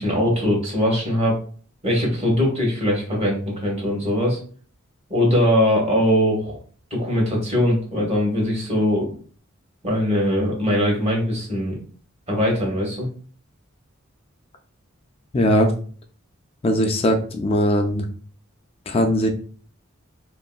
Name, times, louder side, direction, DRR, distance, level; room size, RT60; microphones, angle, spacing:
voice 1, 0.0-1.4 1.8-4.4 5.1-6.6 6.9-9.1 9.8-11.8 12.3-13.1, equal, 30° right, -2 dB, 1.1 m, -21 dB
voice 2, 15.3-15.7 16.6-18.0 18.9-19.3, equal, 25° left, 4 dB, 0.3 m, -19 dB
3.0 x 2.7 x 2.2 m, 0.43 s
head